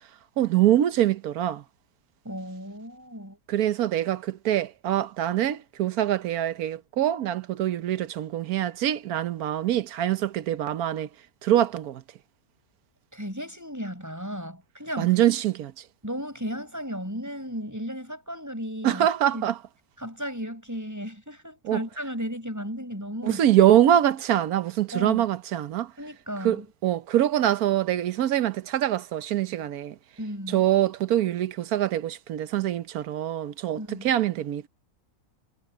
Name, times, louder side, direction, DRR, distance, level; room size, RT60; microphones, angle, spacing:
voice 1, 0.4-1.6 3.5-11.1 11.4-12.0 15.0-15.7 18.8-19.6 21.6-21.8 23.2-25.9 26.4-29.9 30.5-34.7, right 11 dB, 75° right, 1.3 m, -24 dB
voice 2, 2.2-3.4 13.1-15.2 16.0-19.5 20.0-23.4 24.9-25.2 26.0-26.7 30.2-30.6 33.8-34.1, equal, 10° right, 7.0 m, -35 dB
omnidirectional pair, 1.6 m